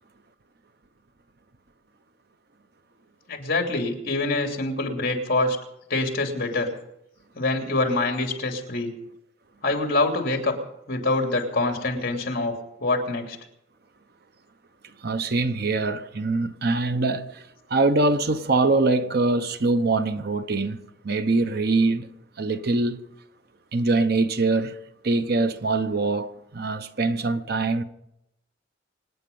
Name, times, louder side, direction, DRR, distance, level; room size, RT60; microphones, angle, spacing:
voice 1, 3.3-5.6 5.9-6.7 7.3-8.9 9.6-10.6 10.9-12.5 12.8-13.4, left 2 dB, 50° left, 3.0 m, -25 dB
voice 2, 15.0-20.8 21.0-22.1 22.4-23.0 23.7-24.8 25.0-27.8, right 3 dB, 55° right, 0.8 m, -23 dB
25.0 x 9.5 x 5.4 m
head